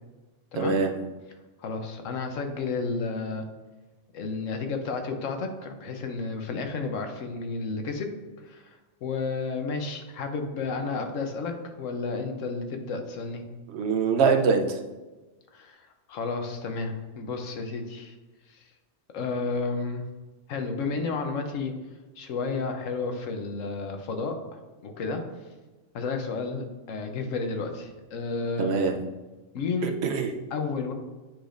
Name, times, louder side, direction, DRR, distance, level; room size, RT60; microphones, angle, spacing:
voice 1, 0.5-0.9 13.7-14.8 28.6-29.0 30.0-30.3, right 5 dB, 65° right, 5 dB, 0.9 m, -23 dB
voice 2, 1.6-3.5 4.1-8.1 8.4-13.4 15.5-15.8 16.1-18.1 18.5-18.7 19.1-20.0 20.5-21.7 22.2-24.4 24.8-25.2 25.9-28.8 29.5-29.9 30.5-30.9, left 4 dB, 90° left, 5 dB, 1.2 m, -31 dB
9.0 x 5.0 x 2.5 m, 1.2 s
omnidirectional pair, 1.3 m